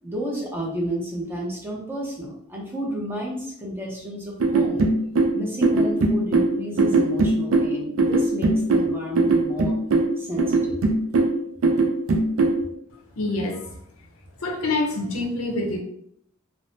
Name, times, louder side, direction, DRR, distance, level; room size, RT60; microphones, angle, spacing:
voice 1, 0.0-4.9 5.3-9.8 10.2-10.8, equal, 10° right, -3 dB, 0.5 m, -31 dB
sound 1, 4.4-12.6, right 2 dB, 70° right, 0.4 m, -20 dB
voice 2, 13.2-13.7 14.4-15.8, left 2 dB, 75° left, 1 dB, 0.6 m, -26 dB
3.3 x 2.0 x 2.6 m, 0.71 s
head